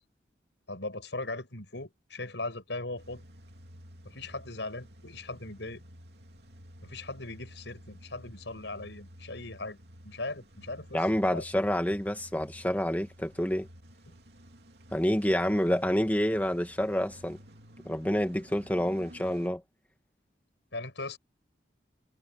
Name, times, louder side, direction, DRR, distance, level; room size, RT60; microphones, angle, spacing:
voice 1, 0.7-3.3 4.0-5.8 6.8-9.8 10.0-11.0 11.3-11.4 14.1-14.2 20.7-21.2, left 2 dB, 75° left, 5.7 m, -39 dB
Car / Engine starting / Idling, 3.0-19.5, equal, 60° right, 3.0 m, -52 dB
voice 2, 10.9-13.7 14.9-17.4 17.9-19.6, equal, 10° left, 1.7 m, -28 dB
head